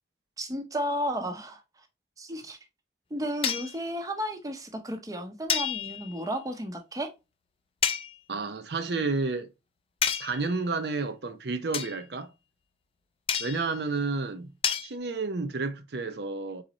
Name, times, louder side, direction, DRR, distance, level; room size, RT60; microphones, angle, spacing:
voice 1, 0.4-1.6 2.2-2.6 3.1-7.1, equal, 20° right, 0.7 m, -33 dB
sound 1, 3.4-3.8 5.5-6.2 7.8-8.1 10.0-10.5 11.7-12.0 13.3-13.7 14.6-14.9, left 8 dB, 30° left, 0.4 m, -29 dB
voice 2, 8.3-9.5 10.2-12.3 13.4-14.5 14.8-16.6, right 3 dB, 65° right, 0.6 m, -31 dB
3.9 x 3.9 x 3.0 m
head